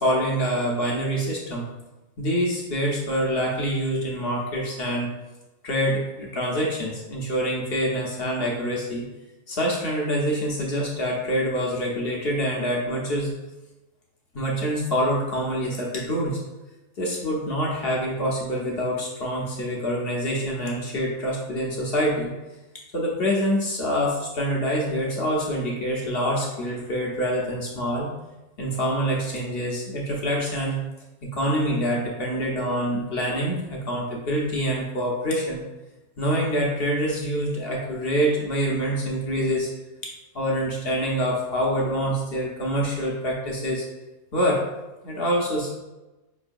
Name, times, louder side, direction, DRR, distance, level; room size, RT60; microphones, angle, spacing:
voice 1, 0.0-1.7 2.2-5.1 5.6-9.0 9.5-13.3 14.3-16.4 17.0-22.3 22.9-28.1 28.6-30.8 31.2-35.6 36.2-39.7 40.3-43.8 44.3-44.6 45.0-45.7, equal, 55° left, -2 dB, 0.8 m, -26 dB
4.8 x 3.1 x 2.5 m, 1.1 s
omnidirectional pair, 1.5 m